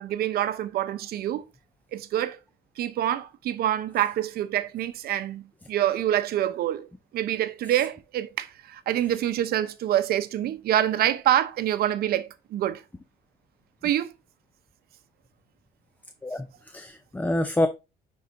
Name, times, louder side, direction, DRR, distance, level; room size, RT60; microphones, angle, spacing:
voice 1, 0.0-1.4 1.9-2.4 2.8-6.9 7.1-12.8 13.8-14.1, right 12 dB, 65° right, 0.8 m, -26 dB
voice 2, 16.2-17.7, left 1 dB, 10° left, 0.5 m, -27 dB
9.7 x 4.1 x 2.6 m
cardioid pair, 110°, 17 cm